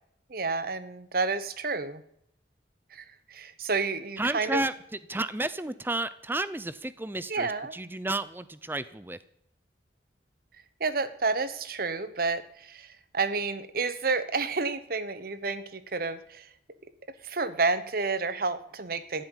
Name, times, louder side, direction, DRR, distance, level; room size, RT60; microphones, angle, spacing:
voice 1, 0.3-2.0 2.9-4.6 7.3-7.7 10.8-12.9 13.1-16.5 17.2-19.2, right 4 dB, 50° right, 13 dB, 0.9 m, -30 dB
voice 2, 4.2-4.7 5.1-9.2, right 2 dB, 10° right, 15 dB, 0.6 m, -32 dB
14.5 x 7.7 x 9.9 m, 0.74 s
head